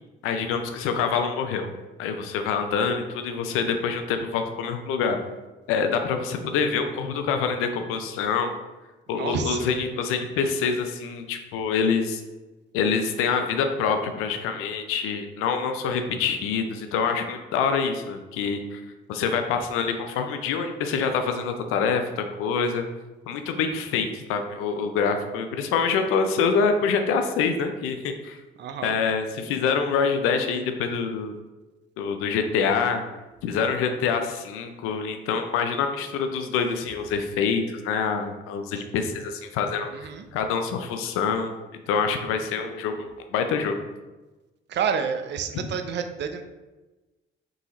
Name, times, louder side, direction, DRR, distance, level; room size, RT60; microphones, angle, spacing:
voice 1, 0.2-1.7 2.0-5.2 5.7-8.6 9.1-12.2 12.7-18.8 19.1-22.8 23.3-28.4 28.8-31.4 32.0-33.0 33.4-39.9 40.3-41.6 41.9-43.9 45.5-45.6, left 5 dB, 90° left, 6 dB, 0.5 m, -26 dB
voice 2, 9.1-9.7 28.6-29.0 39.9-40.2 44.7-46.4, right 6 dB, 55° right, 8 dB, 0.5 m, -29 dB
3.9 x 2.8 x 4.0 m, 1.1 s
supercardioid pair, 75°, 21 cm